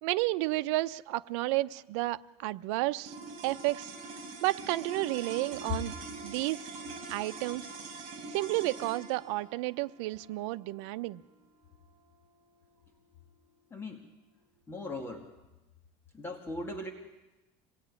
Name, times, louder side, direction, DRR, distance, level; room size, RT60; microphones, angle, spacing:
voice 1, 0.0-3.2 3.4-3.9 4.4-5.9 6.2-6.6 7.1-7.7 8.3-11.2, right 19 dB, 80° right, 12 dB, 0.7 m, -31 dB
sound 1, 3.0-13.5, right 3 dB, 40° right, 6.2 m, -44 dB
voice 2, 14.7-15.3 16.1-16.9, left 1 dB, 15° left, 3 dB, 2.1 m, -39 dB
26.0 x 18.0 x 9.6 m, 1.1 s
cardioid pair, 160°, 15 cm